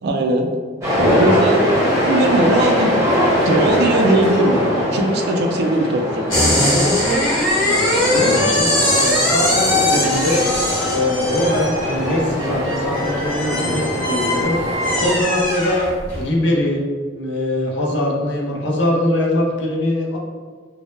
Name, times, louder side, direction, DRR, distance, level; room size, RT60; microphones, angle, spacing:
voice 1, 0.0-0.5 1.1-1.7 2.0-2.9 3.5-6.3, right 2 dB, 60° right, 3 dB, 0.3 m, -19 dB
sound 1, 0.8-15.2, equal, 15° right, 0.6 m, -21 dB
sound 2, 6.3-16.3, left 1 dB, 25° left, 0.9 m, -20 dB
voice 2, 7.6-10.5 10.9-14.6 14.9-16.8 17.1-20.2, left 1 dB, 70° left, -2 dB, 0.5 m, -22 dB
2.1 x 2.0 x 3.0 m, 1.5 s
head